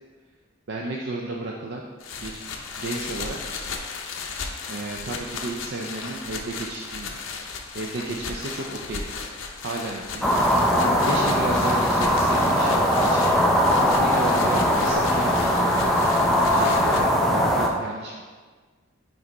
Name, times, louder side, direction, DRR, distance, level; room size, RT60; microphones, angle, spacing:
voice 1, 0.7-1.8 2.2-2.4 2.8-3.4 4.7-7.1 7.7-9.0 9.6-10.3 10.6-16.3 16.5-18.3, right 2 dB, 55° right, -1 dB, 0.5 m, -33 dB
sound 1, 2.0-17.0, left 5 dB, 80° left, 0.7 m, -36 dB
sound 2, 10.2-17.7, equal, ahead, 0.5 m, -20 dB
5.1 x 4.7 x 4.0 m, 1.5 s
head